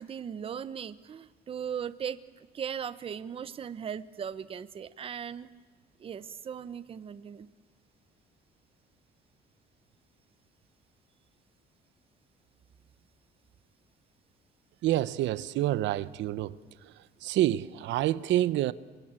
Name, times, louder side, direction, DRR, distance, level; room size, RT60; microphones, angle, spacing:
voice 1, 0.0-5.5 6.0-7.5, right 8 dB, 30° right, 0.9 m, -38 dB
voice 2, 14.8-16.6 16.8-16.9 17.2-18.7, right 14 dB, 85° right, 0.8 m, -27 dB
27.5 x 23.0 x 9.0 m
cardioid pair, 175°, 18 cm